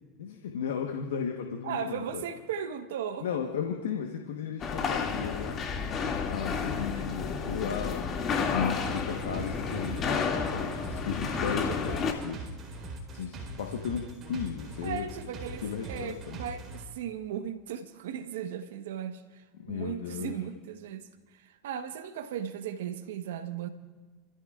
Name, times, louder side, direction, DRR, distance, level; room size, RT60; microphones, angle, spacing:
voice 1, 0.2-2.2 3.2-5.6 5.9-8.1 8.5-12.4 13.1-15.1 15.6-16.4 19.6-20.4, left 7 dB, 85° left, 1.1 m, -35 dB
voice 2, 1.6-3.3 6.9-7.1 7.5-7.8 11.4-11.8 14.8-23.7, right 8 dB, 80° right, 1.1 m, -37 dB
sound 1, 4.6-12.1, left 5 dB, 40° left, 2.2 m, -31 dB
sound 2, 8.8-16.8, right 2 dB, 40° right, 4.1 m, -42 dB
28.5 x 14.5 x 2.4 m
hypercardioid pair, 90°, 0 cm